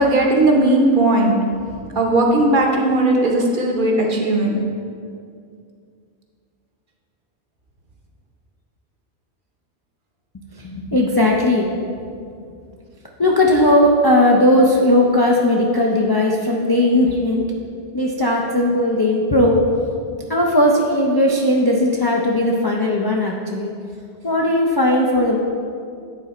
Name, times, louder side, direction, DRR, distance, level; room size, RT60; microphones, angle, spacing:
voice 1, 0.0-1.3 1.9-4.6, right 2 dB, 50° right, 0 dB, 0.9 m, -17 dB
voice 2, 10.6-11.8 13.2-17.4 17.9-19.6 20.3-23.7 24.2-25.4, left 1 dB, 35° left, -2 dB, 0.4 m, -17 dB
9.2 x 3.8 x 4.3 m, 2.3 s
omnidirectional pair, 1.2 m